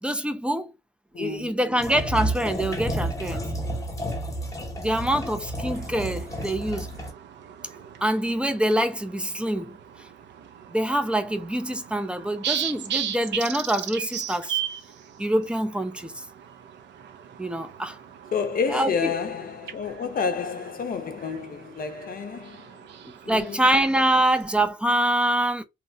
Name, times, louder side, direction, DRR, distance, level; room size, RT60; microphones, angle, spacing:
voice 1, 0.0-0.7 1.1-3.4 4.8-6.9 8.0-9.8 10.7-14.6 15.2-16.2 17.4-18.0 18.7-19.1 23.0-25.6, right 1 dB, 5° right, 0.4 m, -25 dB
voice 2, 1.1-1.9 18.3-22.9 23.2-23.7, left 5 dB, 45° left, 0.6 m, -30 dB
sound 1, 1.8-7.1, right 1 dB, 15° left, 0.8 m, -31 dB
sound 2, 5.6-24.6, right 9 dB, 65° right, 0.5 m, -38 dB
2.8 x 2.0 x 2.6 m
cardioid pair, 90°, 20 cm